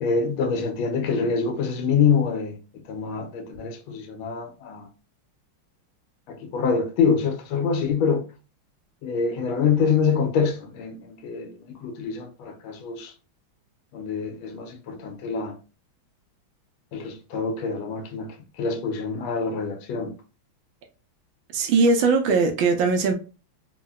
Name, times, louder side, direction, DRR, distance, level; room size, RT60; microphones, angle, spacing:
voice 1, 0.0-4.9 6.3-8.3 9.0-13.1 13.9-15.6 16.9-20.2, left 5 dB, 85° left, 1.5 m, -25 dB
voice 2, 21.5-23.1, right 4 dB, 75° right, 1.3 m, -20 dB
3.8 x 2.1 x 2.2 m
omnidirectional pair, 2.3 m